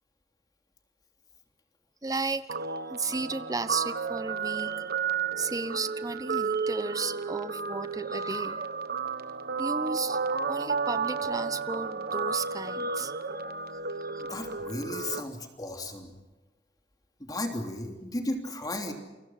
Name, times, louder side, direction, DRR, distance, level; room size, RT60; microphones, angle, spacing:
voice 1, 2.0-2.5 2.9-4.9 5.4-8.6 9.6-10.2 10.5-13.2 14.1-14.2, right 3 dB, 20° right, 13 dB, 1.1 m, -34 dB
Guitar, 2.5-15.2, right 5 dB, 60° right, 1.2 m, -32 dB
voice 2, 14.2-16.1 17.2-18.9, left 1 dB, 25° left, 3 dB, 3.2 m, -34 dB
29.0 x 24.5 x 5.9 m, 1.2 s
head